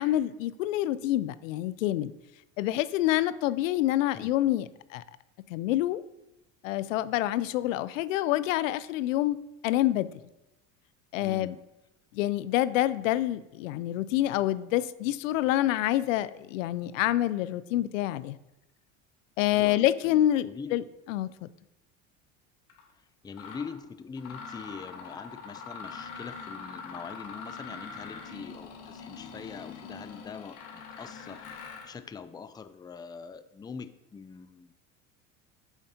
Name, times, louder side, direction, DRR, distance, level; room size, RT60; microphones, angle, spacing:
voice 1, 0.0-2.1 2.6-5.0 5.5-6.0 6.6-9.4 9.6-10.1 11.1-11.5 12.1-18.4 19.4-21.3, left 14 dB, 80° left, 17 dB, 0.5 m, -27 dB
voice 2, 4.1-4.5 11.2-11.6 19.5-20.8 22.9-31.4 31.8-34.7, left 5 dB, 10° left, 12 dB, 0.4 m, -43 dB
Mechanisms, 22.7-22.8 23.3-23.7 24.2-32.0, left 5 dB, 65° left, 1.8 m, -43 dB
8.1 x 7.2 x 2.8 m, 0.94 s
hypercardioid pair, 80°, 38 cm